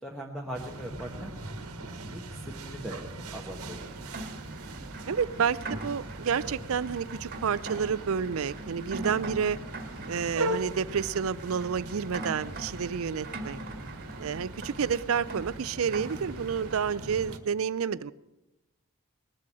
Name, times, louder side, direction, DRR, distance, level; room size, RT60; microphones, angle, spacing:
voice 1, 0.0-1.3 1.8-3.0 3.3-3.9, equal, ahead, -1 dB, 1.1 m, -40 dB
sound 1, 0.5-17.4, right 2 dB, 90° right, 1.4 m, -39 dB
Rain, 3.5-16.8, right 2 dB, 45° right, 1.6 m, -43 dB
voice 2, 5.1-9.6 10.1-13.6 14.2-18.1, right 6 dB, 70° right, 19 dB, 0.4 m, -30 dB
19.5 x 7.6 x 7.5 m, 0.97 s
head